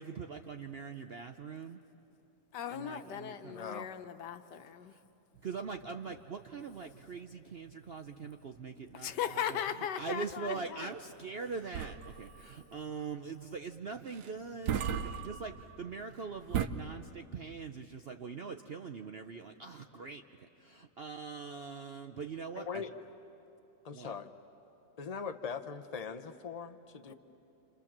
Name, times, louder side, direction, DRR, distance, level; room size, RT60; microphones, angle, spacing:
voice 1, 0.0-1.8 2.7-3.6 4.9-5.0 5.4-9.6 10.0-22.8 23.9-24.1, right 5 dB, 55° right, 6 dB, 0.7 m, -42 dB
voice 2, 2.5-5.0 9.0-10.9 27.0-27.1, left 9 dB, 80° left, 9 dB, 1.5 m, -38 dB
voice 3, 3.5-3.9 22.5-22.9 23.8-24.3 25.0-27.1, left 6 dB, 35° left, 9 dB, 0.7 m, -41 dB
sound 1, 5.3-16.7, right 9 dB, 75° right, 1.4 m, -40 dB
29.5 x 27.5 x 7.3 m, 2.9 s
omnidirectional pair, 1.8 m